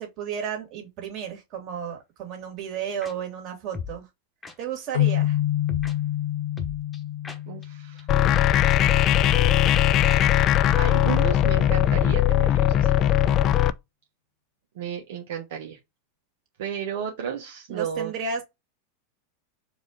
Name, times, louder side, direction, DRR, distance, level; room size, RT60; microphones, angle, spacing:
voice 1, 0.0-4.1 4.6-5.4 17.7-18.4, right 7 dB, 45° right, 2.2 m, -33 dB
sound 1, 3.0-3.1 3.7-4.0 4.4-4.5 5.7-5.9 6.6-7.7 8.0-8.1 8.3-8.4 8.7-8.8 9.0-9.1 9.4-9.8 10.1-10.2 10.5-10.6 10.8-10.9, left 5 dB, 20° left, 1.1 m, -36 dB
sound 2, 4.9-8.5, left 13 dB, 85° left, 1.4 m, -27 dB
voice 2, 7.5-8.1 10.8-12.9 14.8-15.8 16.6-18.1, right 8 dB, 70° right, 1.1 m, -33 dB
sound 3, 8.1-13.7, left 12 dB, 40° left, 0.4 m, -19 dB
4.7 x 2.7 x 3.8 m
hypercardioid pair, 105°, 0 cm